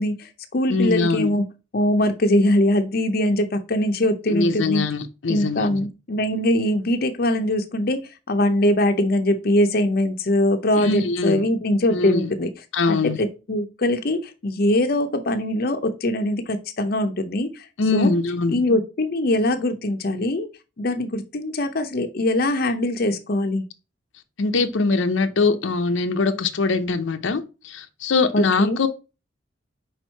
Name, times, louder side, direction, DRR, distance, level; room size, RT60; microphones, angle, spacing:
voice 1, 0.0-1.4 1.7-4.9 5.3-12.5 12.9-17.6 17.9-18.1 18.5-20.5 20.8-23.6 28.3-28.8, left 1 dB, 50° left, 0.7 m, -22 dB
voice 2, 0.7-1.3 4.3-5.8 10.8-11.4 11.9-12.3 12.7-13.2 17.8-18.6 24.4-28.9, left 3 dB, 90° left, 0.7 m, -22 dB
4.9 x 4.5 x 4.5 m
head